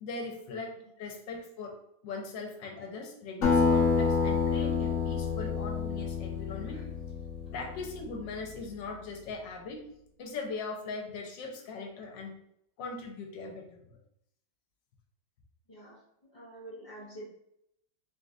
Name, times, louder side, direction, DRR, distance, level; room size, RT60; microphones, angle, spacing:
voice 1, 0.0-1.8 2.0-6.8 7.5-9.8 10.2-12.3 12.8-13.8, left 3 dB, 85° left, 1 dB, 1.5 m, -40 dB
Acoustic guitar, 3.4-8.3, left 5 dB, 50° left, 1.4 m, -28 dB
voice 2, 15.7-16.0 16.3-17.3, right 1 dB, 20° left, -11 dB, 1.0 m, -46 dB
3.9 x 3.6 x 2.5 m, 0.76 s
omnidirectional pair, 1.9 m